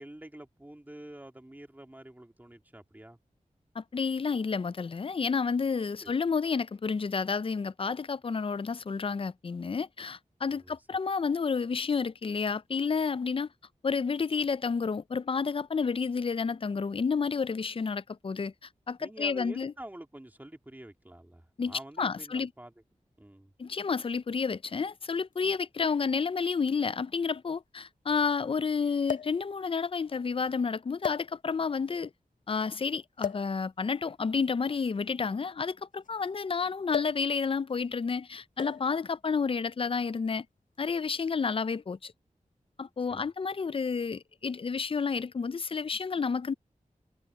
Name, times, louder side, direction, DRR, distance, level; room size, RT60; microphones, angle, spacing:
voice 1, 0.0-3.2 6.0-6.1 10.5-10.7 19.0-22.7 23.2-23.5 43.0-43.2, right 1 dB, 15° right, 2.3 m, -47 dB
voice 2, 3.8-13.5 13.8-18.5 18.9-19.7 21.6-22.5 23.6-32.1 32.5-40.5 40.8-42.1 42.8-46.5, left 5 dB, 45° left, 0.4 m, -30 dB
sound 1, 25.3-25.4 26.5-26.6 26.9-27.0 29.0-29.5 30.3-30.5 31.0-31.7 33.2-33.5 34.7-36.3 36.9-37.3 37.5-37.8 38.6-39.0 39.9-40.2, left 8 dB, 80° left, 0.7 m, -36 dB
wide cardioid pair, 95°, 13 cm